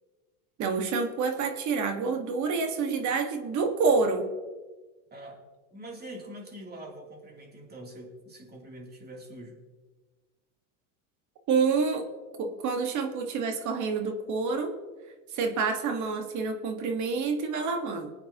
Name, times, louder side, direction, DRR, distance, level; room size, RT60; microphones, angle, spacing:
voice 1, 0.6-4.3 11.5-12.1 12.4-14.7 15.3-18.1, right 4 dB, 50° right, 5 dB, 1.6 m, -28 dB
voice 2, 5.7-9.6, right 1 dB, 25° right, 0 dB, 3.0 m, -44 dB
20.0 x 9.2 x 2.9 m, 1.3 s
supercardioid pair, 110°, 38 cm